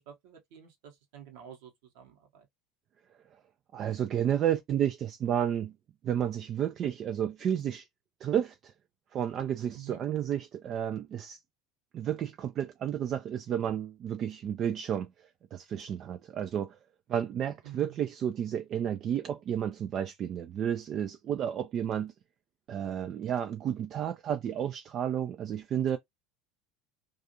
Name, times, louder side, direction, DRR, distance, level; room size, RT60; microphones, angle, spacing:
voice 1, 0.1-2.5 9.7-10.0 17.6-18.0, right 10 dB, 60° right, 0.9 m, -48 dB
voice 2, 3.7-5.7 6.0-7.9 8.2-8.7 9.1-11.4 11.9-16.8 17.1-22.1 22.7-26.0, right 9 dB, 40° right, 0.3 m, -31 dB
2.5 x 2.3 x 2.7 m
figure-of-eight pair, 70°, 0 cm